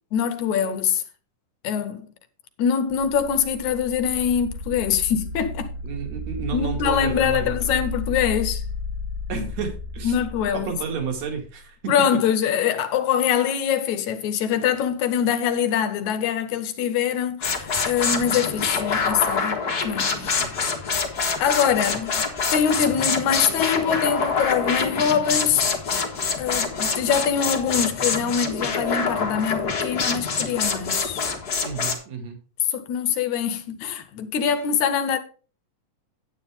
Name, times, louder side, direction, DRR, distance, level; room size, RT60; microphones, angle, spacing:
voice 1, 0.1-1.0 1.6-2.1 2.6-5.7 6.5-8.7 10.0-10.8 11.9-20.5 21.4-22.2 22.5-25.7 26.4-31.3 32.6-35.2, left 8 dB, 70° left, 2.1 m, -24 dB
sound 1, 2.9-11.7, left 3 dB, 25° right, 1.5 m, -33 dB
voice 2, 5.8-7.8 9.3-10.2 10.5-11.9 20.4-20.8 31.6-32.4, right 5 dB, 55° right, 3.3 m, -31 dB
sound 2, 17.4-31.9, left 5 dB, 40° left, 1.6 m, -25 dB
10.0 x 9.0 x 3.6 m
omnidirectional pair, 3.8 m